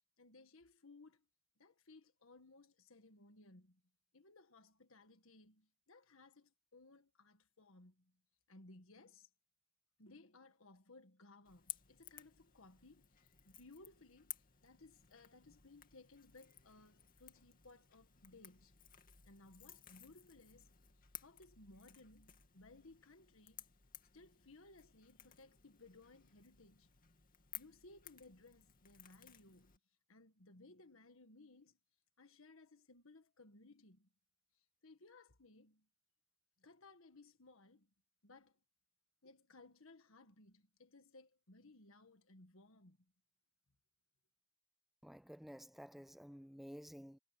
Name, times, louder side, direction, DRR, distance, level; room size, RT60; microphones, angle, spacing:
voice 1, 0.2-1.2 1.6-3.8 4.1-8.1 8.5-9.3 10.0-14.3 14.6-18.8 19.2-20.7 21.2-23.6 24.1-26.9 27.5-29.7 30.1-31.8 32.2-34.1 34.8-35.9 36.6-37.9 38.2-38.6 39.2-43.1, left 2 dB, 65° left, 1.7 m, -62 dB
Crackle / Crack, 11.4-29.8, left 11 dB, 40° left, 2.4 m, -57 dB
voice 2, 45.0-47.2, equal, ahead, 0.4 m, -53 dB
head